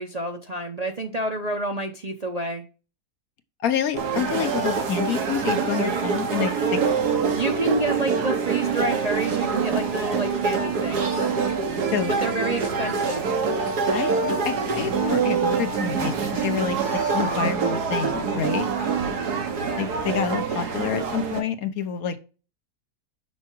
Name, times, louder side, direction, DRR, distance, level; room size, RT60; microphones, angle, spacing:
voice 1, 0.0-2.6 7.3-11.3 12.1-13.2, right 2 dB, 35° right, 3 dB, 0.6 m, -28 dB
voice 2, 3.6-6.8 11.9-12.3 13.9-18.7 19.8-22.2, left 7 dB, 70° left, 9 dB, 1.3 m, -28 dB
sound 1, 4.0-21.4, right 5 dB, 85° right, 1.7 m, -25 dB
6.2 x 5.7 x 4.5 m, 0.33 s
omnidirectional pair, 1.7 m